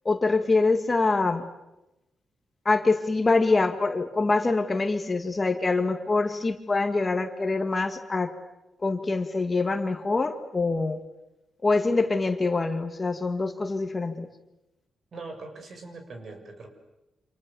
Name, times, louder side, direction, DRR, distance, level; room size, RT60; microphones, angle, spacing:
voice 1, 0.1-1.4 2.7-8.3 8.8-11.0 11.6-14.3, left 3 dB, 25° left, 6 dB, 1.9 m, -25 dB
voice 2, 15.1-16.7, right 3 dB, 50° right, 5 dB, 6.6 m, -41 dB
29.0 x 27.0 x 7.0 m, 0.95 s
cardioid pair, 120°, 0 cm